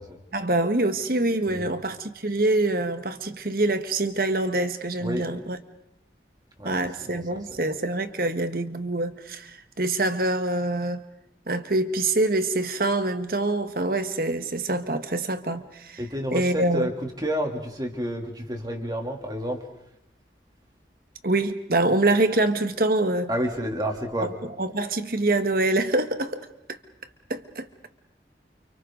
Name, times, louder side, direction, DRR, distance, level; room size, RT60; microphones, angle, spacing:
voice 1, 0.3-5.6 6.6-11.0 11.5-16.0 16.3-16.9 21.2-23.3 24.2-24.3 24.6-26.5 27.3-27.7, right 2 dB, 55° right, 1.6 m, -25 dB
voice 2, 7.1-7.6 16.0-19.6 23.3-24.3, equal, 25° right, 3.1 m, -30 dB
30.0 x 29.5 x 4.0 m
head